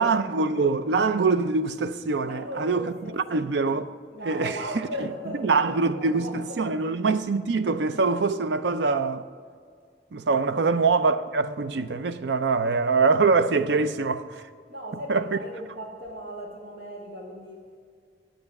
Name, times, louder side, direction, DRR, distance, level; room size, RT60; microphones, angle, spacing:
voice 1, 0.0-2.9 3.3-3.9 4.2-4.5 5.4-9.3 10.1-14.4 15.1-15.3, right 4 dB, 80° right, 0.5 m, -24 dB
voice 2, 2.2-3.4 4.1-6.8 10.4-10.7 14.7-17.8, equal, 60° right, 2.0 m, -38 dB
8.8 x 7.8 x 5.9 m
head